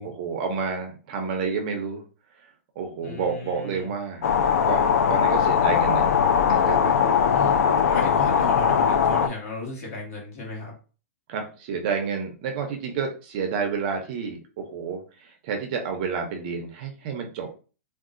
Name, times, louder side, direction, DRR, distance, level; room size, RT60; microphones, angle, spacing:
voice 1, 0.0-2.0 2.8-4.3 4.7-6.1 6.5-7.2 11.3-17.5, right 5 dB, 30° right, 3 dB, 0.4 m, -30 dB
voice 2, 3.0-3.9 7.3-10.7, left 3 dB, 55° left, -1 dB, 1.5 m, -35 dB
sound 1, 4.2-9.3, left 7 dB, 75° left, 0.4 m, -20 dB
3.6 x 2.3 x 2.4 m, 0.36 s
hypercardioid pair, 175°, 9 cm